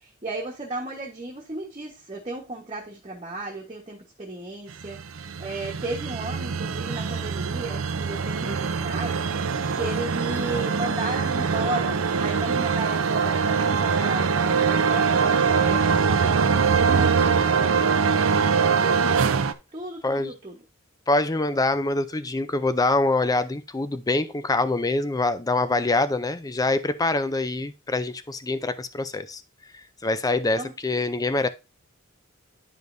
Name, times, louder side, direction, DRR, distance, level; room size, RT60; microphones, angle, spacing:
voice 1, 0.0-18.0 18.8-19.3 19.7-20.6 30.6-30.7, right 2 dB, 30° right, 1.3 m, -35 dB
sound 1, 4.8-19.5, right 5 dB, 75° right, 0.6 m, -23 dB
voice 2, 20.0-20.3 21.1-29.4 30.0-31.5, left 2 dB, 20° left, 0.5 m, -25 dB
10.5 x 5.1 x 2.6 m
head